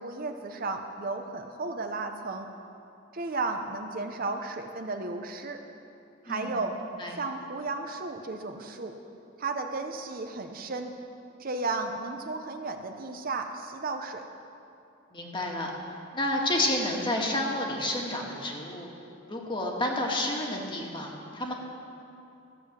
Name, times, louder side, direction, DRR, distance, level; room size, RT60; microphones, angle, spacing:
voice 1, 0.0-2.5 3.1-5.6 6.2-6.8 7.2-9.0 9.4-10.9 11.4-14.3, right 3 dB, 45° right, 5 dB, 0.7 m, -34 dB
voice 2, 6.3-6.6 7.0-7.2 15.1-15.7 16.1-18.9 19.3-21.5, left 1 dB, 25° left, 0 dB, 1.6 m, -30 dB
14.5 x 7.8 x 7.3 m, 2.8 s
head